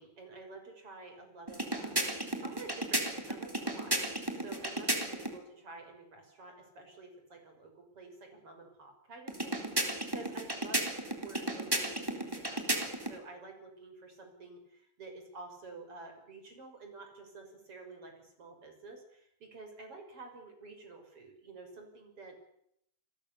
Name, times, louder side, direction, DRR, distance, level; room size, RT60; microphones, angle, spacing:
voice 1, 0.0-22.4, right 3 dB, 35° right, 4 dB, 6.8 m, -50 dB
sound 1, 1.5-5.4 9.3-13.2, right 1 dB, 5° right, 3.3 m, -34 dB
29.0 x 22.0 x 7.1 m, 0.76 s
omnidirectional pair, 4.2 m